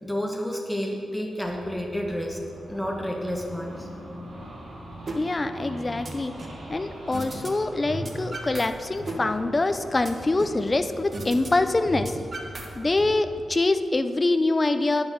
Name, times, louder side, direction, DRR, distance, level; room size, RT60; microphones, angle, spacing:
voice 1, 0.0-2.4 2.7-3.9 9.1-9.2, equal, 5° left, 0 dB, 1.1 m, -30 dB
sound 1, 1.4-13.5, right 1 dB, 85° right, 2.8 m, -42 dB
sound 2, 5.1-5.2 5.6-6.6 7.1-7.5 7.8-8.7 9.0-10.6 11.1-11.5 11.8-13.1, right 2 dB, 30° right, 1.0 m, -36 dB
voice 2, 5.2-6.3 6.7-12.2 12.8-15.0, left 2 dB, 20° left, 9 dB, 0.4 m, -24 dB
8.9 x 7.3 x 6.1 m, 2.5 s
wide cardioid pair, 175°, 0 cm